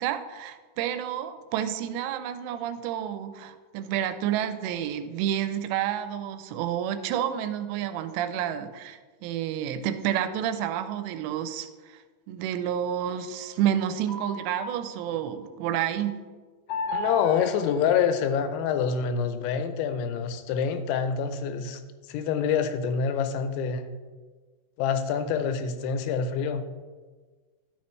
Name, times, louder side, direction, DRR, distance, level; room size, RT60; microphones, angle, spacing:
voice 1, 0.0-11.7 12.3-16.2, right 10 dB, 85° right, 10 dB, 2.7 m, -29 dB
sound 1, 13.2-15.4 16.7-18.9, left 2 dB, 60° left, 1.8 m, -36 dB
voice 2, 16.9-21.8 22.1-23.8 24.8-26.6, left 7 dB, 90° left, 9 dB, 3.0 m, -26 dB
11.5 x 7.3 x 3.1 m, 1.4 s
omnidirectional pair, 5.1 m